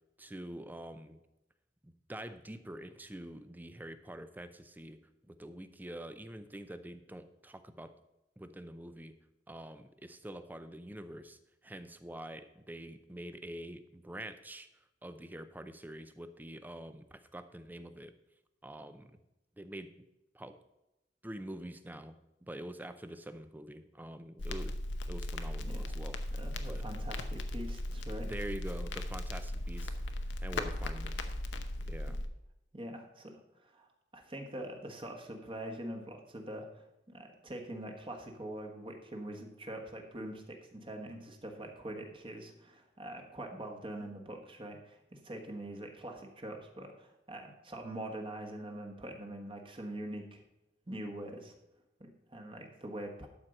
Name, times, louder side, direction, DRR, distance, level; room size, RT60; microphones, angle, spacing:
voice 1, 0.2-1.2 1.8-5.0 5.3-7.9 8.4-9.1 9.5-14.7 15.0-18.1 18.6-19.2 19.6-19.9 20.3-20.6 21.2-22.2 22.5-24.8 25.1-26.2 26.7-26.8 28.2-30.0 30.4-31.2 31.5-31.6 31.9-32.2, right 1 dB, 10° right, 10 dB, 0.6 m, -45 dB
Crackle, 24.4-32.2, left 1 dB, 80° left, 0.8 m, -37 dB
voice 2, 26.3-28.3 32.7-50.4 50.9-51.6 52.0-53.3, right 1 dB, 30° right, 3 dB, 1.4 m, -44 dB
12.0 x 4.5 x 6.5 m, 0.92 s
head